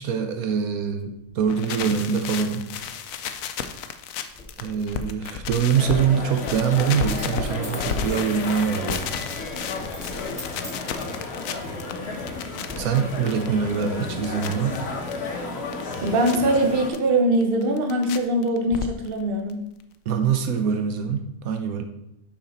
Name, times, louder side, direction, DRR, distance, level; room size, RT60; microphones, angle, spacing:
voice 1, 0.0-2.7 4.6-9.0 12.7-14.8 20.1-21.8, right 7 dB, 80° right, 6 dB, 1.1 m, -24 dB
sound 1, 1.4-6.1 6.4-15.2 15.5-16.4 16.9-17.0 17.4-18.2 18.4-19.2 19.5-19.6 19.8-19.9 20.1-20.2, left 7 dB, 75° left, 1.0 m, -33 dB
Coin (dropping), 4.3-4.5 7.0-9.0 9.3-9.5 9.9-10.1 10.4-11.2 11.8-12.4 12.7-12.8, equal, 5° right, 1.9 m, -41 dB
sound 2, 5.7-16.9, left 3 dB, 50° left, 1.2 m, -33 dB
voice 2, 16.0-19.6, right 1 dB, 45° right, 4 dB, 1.1 m, -22 dB
6.7 x 5.9 x 4.1 m, 0.82 s
omnidirectional pair, 1.5 m